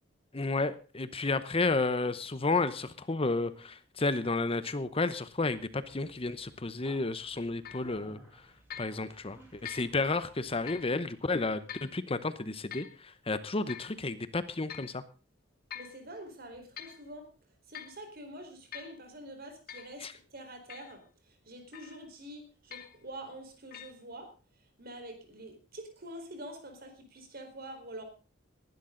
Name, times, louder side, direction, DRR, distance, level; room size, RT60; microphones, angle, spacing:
voice 1, 0.3-8.2 8.8-15.0 20.0-20.1, left 3 dB, 30° left, 13 dB, 0.8 m, -32 dB
Conversation, 2.2-11.2, right 1 dB, 10° right, 6.9 m, -60 dB
sound 1, 7.7-7.9 8.7-9.0 9.7-9.9 10.7-10.9 11.7-11.9 12.7-13.0 13.7-14.0 14.7-15.0 15.7-16.0 16.5-17.0 17.7-18.0 18.7-19.0 19.7-19.9 20.7-21.0 21.7-22.1 22.7-23.0 23.7-23.9, left 9 dB, 50° left, 1.8 m, -45 dB
voice 2, 15.7-17.3 17.7-24.3 24.8-28.0, right 1 dB, 55° right, 6 dB, 4.5 m, -46 dB
19.5 x 12.0 x 3.9 m, 0.35 s
head